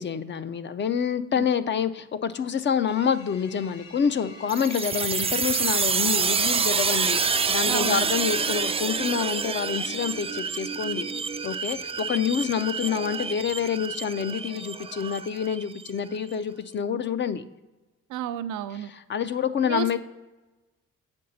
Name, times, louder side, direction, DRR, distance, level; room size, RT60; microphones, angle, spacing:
voice 1, 0.0-11.1 11.4-17.5 18.7-20.0, left 7 dB, 40° left, 12 dB, 0.5 m, -27 dB
sound 1, 2.9-8.8, left 4 dB, 65° left, 1.3 m, -47 dB
sound 2, 4.5-15.9, right 5 dB, 20° right, 0.3 m, -27 dB
voice 2, 7.7-8.0 18.1-18.9 19.6-20.0, right 10 dB, 80° right, 10 dB, 0.5 m, -31 dB
7.6 x 5.3 x 4.0 m, 1.1 s
cardioid pair, 90°, 30 cm